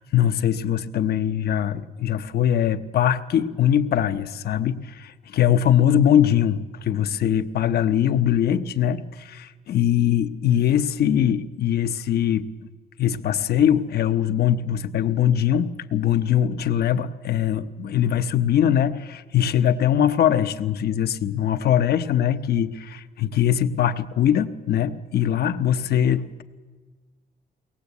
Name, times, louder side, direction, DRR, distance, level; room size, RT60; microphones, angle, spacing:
voice 1, 0.0-12.5 13.0-26.4, left 10 dB, 75° left, 10 dB, 0.9 m, -22 dB
23.0 x 18.5 x 8.3 m, 1.4 s
wide cardioid pair, 160°, 16 cm